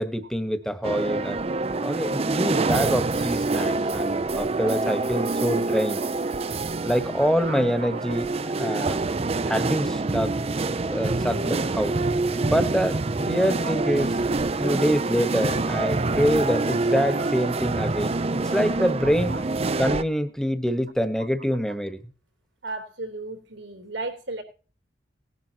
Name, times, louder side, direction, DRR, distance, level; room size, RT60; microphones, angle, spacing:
voice 1, 0.0-1.4 1.8-6.0 6.8-8.3 8.6-9.1 9.5-10.4 10.9-12.0 12.4-14.2 14.5-18.2 18.4-19.4 19.8-22.0, equal, 5° left, 9 dB, 1.3 m, -25 dB
sound 1, 0.8-20.0, right 3 dB, 35° right, 0.5 m, -26 dB
voice 2, 7.4-8.0 13.6-13.7 15.4-15.6 16.4-16.6 17.1-17.6 19.3-19.5 20.6-20.7 21.4-21.6 22.6-24.4, right 3 dB, 85° right, 5 dB, 3.4 m, -37 dB
19.0 x 11.0 x 2.9 m, 0.36 s
head